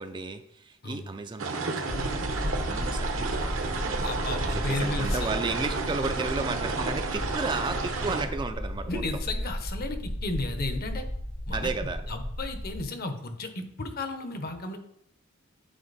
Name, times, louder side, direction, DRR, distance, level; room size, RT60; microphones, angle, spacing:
voice 1, 0.0-2.3 2.7-4.1 4.5-9.0 11.5-12.1, right 3 dB, 25° right, 8 dB, 0.4 m, -33 dB
sound 1, 1.4-8.2, right 4 dB, 75° right, 1.0 m, -32 dB
sound 2, 1.9-12.8, equal, 80° left, 2.5 m, -34 dB
voice 2, 4.0-5.3 8.9-11.0 11.5-11.7 12.1-14.8, left 2 dB, 50° left, 7 dB, 0.9 m, -33 dB
8.6 x 4.3 x 4.1 m, 0.73 s
head